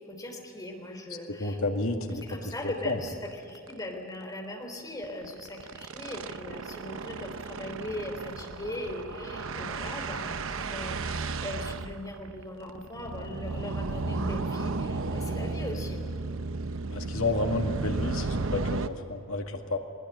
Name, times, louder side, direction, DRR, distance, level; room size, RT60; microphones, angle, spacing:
voice 1, 0.1-1.6 2.2-16.0, left 1 dB, 20° left, 3 dB, 3.6 m, -39 dB
voice 2, 1.4-2.2 2.8-3.0 16.9-19.8, left 2 dB, 80° left, 3 dB, 2.2 m, -30 dB
sound 1, 2.2-2.3 2.7-2.8 3.1-3.3 3.6-3.7 5.0-18.9, right 3 dB, 70° right, 0.9 m, -34 dB
21.0 x 20.5 x 9.9 m, 2.5 s
head